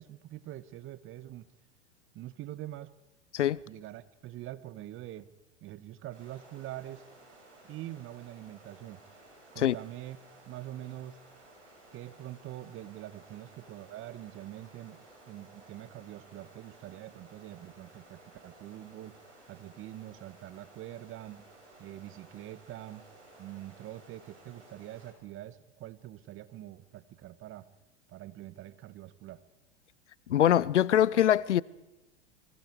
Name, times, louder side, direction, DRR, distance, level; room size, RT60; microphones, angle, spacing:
voice 1, 0.0-1.5 2.1-2.9 3.7-5.3 5.6-7.0 7.6-9.0 9.5-10.2 10.4-11.2 11.9-19.2 19.5-21.5 21.8-23.0 23.4-27.7 28.1-29.4, right 14 dB, 35° right, 1.4 m, -44 dB
sound 1, 6.1-25.1, right 2 dB, 90° right, 6.8 m, -56 dB
voice 2, 30.3-31.6, left 11 dB, 80° left, 0.7 m, -23 dB
28.5 x 23.0 x 4.7 m
figure-of-eight pair, 90°, 35 cm